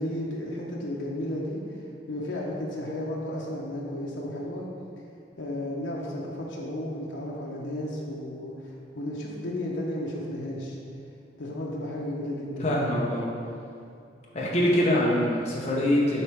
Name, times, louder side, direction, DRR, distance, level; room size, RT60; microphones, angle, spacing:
voice 1, 0.0-1.6 2.1-4.6 5.4-10.8 11.4-12.9, left 1 dB, 85° left, -3 dB, 0.8 m, -33 dB
voice 2, 12.6-13.3 14.3-16.2, left 1 dB, 35° left, -4 dB, 1.0 m, -24 dB
7.1 x 4.7 x 3.5 m, 2.4 s
head